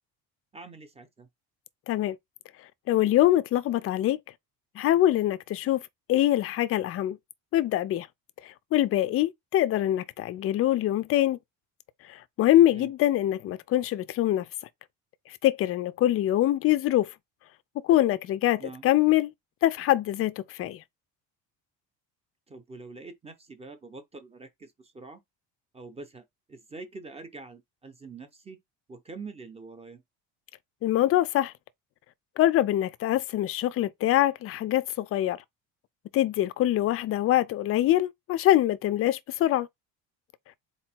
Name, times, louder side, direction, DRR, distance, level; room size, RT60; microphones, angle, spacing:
voice 1, 0.5-1.3 12.7-12.9 18.6-18.9 22.5-25.2 25.7-28.6 28.9-30.0, right 4 dB, 15° right, 0.7 m, -45 dB
voice 2, 1.9-2.2 2.9-4.2 4.8-5.8 6.1-7.2 7.5-8.1 8.7-11.4 12.1-14.4 15.4-17.1 17.8-19.3 19.6-20.8 30.8-31.5 32.4-35.4 36.1-39.7, left 13 dB, 40° left, 0.4 m, -24 dB
4.1 x 2.9 x 4.4 m
cardioid pair, 145°, 35 cm